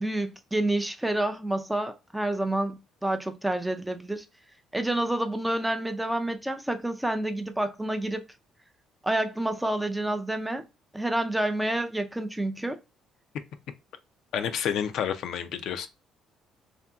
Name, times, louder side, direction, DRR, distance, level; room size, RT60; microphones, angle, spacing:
voice 1, 0.0-4.3 4.7-8.2 9.0-10.6 10.9-12.8, right 1 dB, 5° right, 0.4 m, -28 dB
voice 2, 14.3-15.9, left 8 dB, 70° left, 0.4 m, -29 dB
2.7 x 2.6 x 2.2 m
cardioid pair, 115°, 0 cm